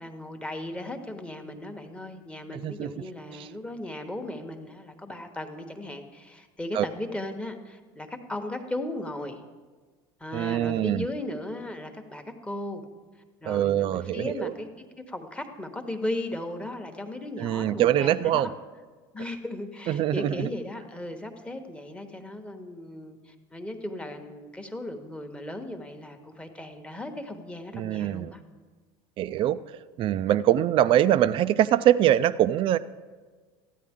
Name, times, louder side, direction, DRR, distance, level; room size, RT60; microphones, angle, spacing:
voice 1, 0.0-9.4 10.2-12.8 13.4-18.5 19.1-28.4, left 1 dB, 10° left, 5 dB, 1.0 m, -36 dB
voice 2, 2.5-2.9 3.4-3.5 6.7-6.9 10.3-11.1 13.5-14.5 17.4-18.5 19.9-20.5 27.7-28.3 29.2-29.6 30.0-32.8, right 12 dB, 40° right, 14 dB, 0.3 m, -23 dB
14.0 x 9.3 x 3.6 m, 1.4 s
supercardioid pair, 100°, 13 cm